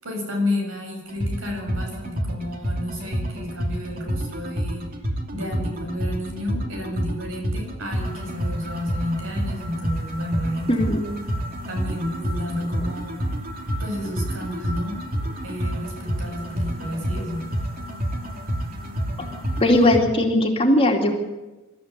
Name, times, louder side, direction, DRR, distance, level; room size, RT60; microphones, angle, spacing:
voice 1, 0.0-4.9 5.3-10.9 11.7-13.2 13.8-15.1 15.4-17.5, left 1 dB, 65° right, 2 dB, 7.7 m, -31 dB
sound 1, 1.1-20.0, equal, 40° right, 3.0 m, -29 dB
voice 2, 10.7-11.1 19.2-19.3 19.6-21.1, left 1 dB, 25° left, 1 dB, 2.6 m, -19 dB
25.0 x 13.5 x 8.5 m, 1.1 s
head